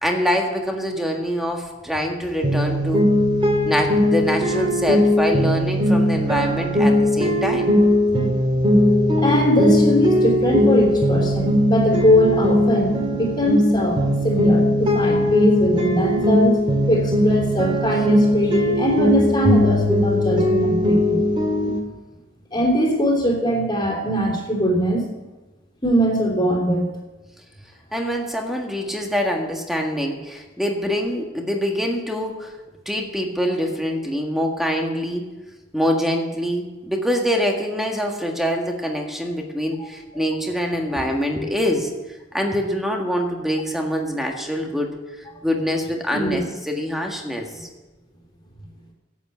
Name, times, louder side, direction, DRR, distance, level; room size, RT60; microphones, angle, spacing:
voice 1, 0.0-3.1 3.6-7.7 27.9-32.5 32.9-35.3 35.7-42.0 42.3-44.9 45.4-47.7, equal, ahead, 1 dB, 1.7 m, -24 dB
sound 1, 2.4-21.8, left 1 dB, 30° right, 1.9 m, -19 dB
voice 2, 9.2-14.0 14.2-16.5 16.9-21.2 22.5-25.1 25.8-26.9 39.8-39.9 40.1-40.2 46.1-46.4, equal, 25° left, -1 dB, 3.3 m, -21 dB
11.5 x 8.4 x 8.3 m, 1.1 s
head